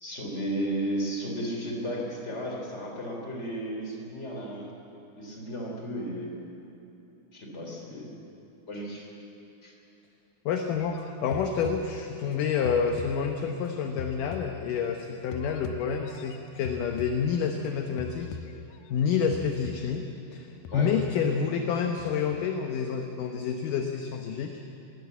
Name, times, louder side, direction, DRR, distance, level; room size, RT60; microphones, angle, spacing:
voice 1, 0.0-4.7 5.2-6.3 7.3-8.1 8.7-9.1 9.6-9.7 20.7-20.9, equal, 20° left, 0 dB, 2.9 m, -34 dB
voice 2, 10.5-18.3 18.9-20.0 20.3-20.5 20.7-24.5, left 6 dB, 70° left, 4 dB, 2.1 m, -28 dB
sound 1, 10.7-12.3 12.7-15.0 15.3-17.7 18.0-19.1 19.3-20.1 20.7-21.7 22.0-22.5, left 8 dB, 90° left, 1.9 m, -43 dB
21.0 x 16.5 x 8.2 m, 3.0 s
omnidirectional pair, 4.8 m